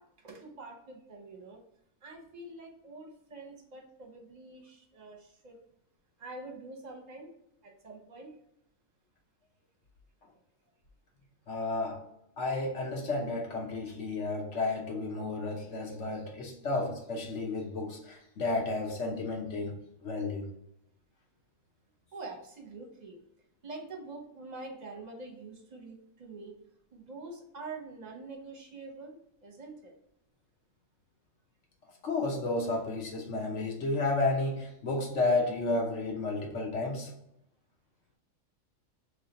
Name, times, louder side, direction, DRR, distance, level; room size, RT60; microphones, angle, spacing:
voice 1, 0.0-1.6 2.0-5.6 6.2-7.3 7.6-8.4 22.1-23.2 23.6-26.6 26.9-29.9, right 3 dB, 35° right, 1 dB, 0.8 m, -46 dB
voice 2, 11.5-12.0 12.4-19.8 20.0-20.5 32.0-37.1, left 2 dB, 55° left, 0 dB, 1.2 m, -32 dB
3.3 x 3.2 x 3.9 m, 0.78 s
omnidirectional pair, 1.5 m